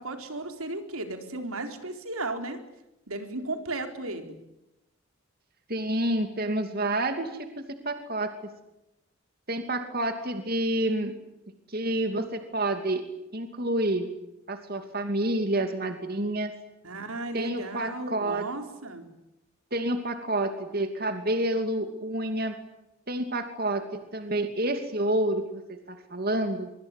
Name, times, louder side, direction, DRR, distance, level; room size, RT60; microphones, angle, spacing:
voice 1, 0.0-2.6 3.1-4.4 16.8-19.1, right 2 dB, 80° right, 6 dB, 4.2 m, -35 dB
voice 2, 5.7-8.3 9.5-11.1 11.7-13.0 13.3-14.1 14.5-16.5 17.3-18.5 19.7-22.5 23.1-26.7, right 1 dB, 45° right, 7 dB, 2.7 m, -29 dB
25.0 x 24.5 x 9.8 m, 0.90 s
head